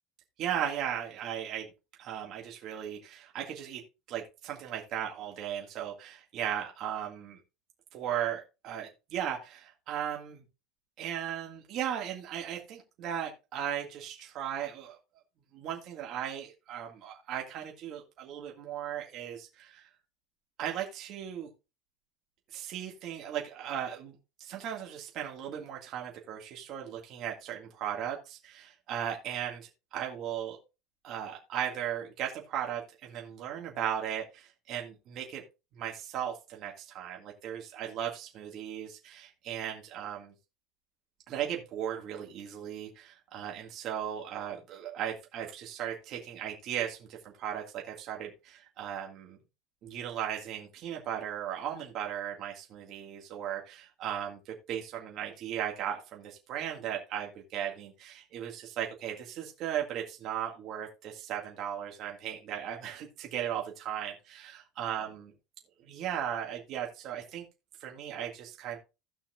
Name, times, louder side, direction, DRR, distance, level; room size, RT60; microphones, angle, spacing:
voice 1, 0.4-1.7 2.0-3.8 4.1-7.4 7.9-10.4 11.0-15.0 15.5-19.9 20.6-21.5 22.5-24.1 24.4-30.6 31.0-35.4 35.7-40.3 41.3-49.4 49.8-65.3 65.8-67.4 67.8-68.8, right 10 dB, 45° right, 0 dB, 1.9 m, -37 dB
16.5 x 5.7 x 2.4 m, 0.28 s
cardioid pair, 155°, 0 cm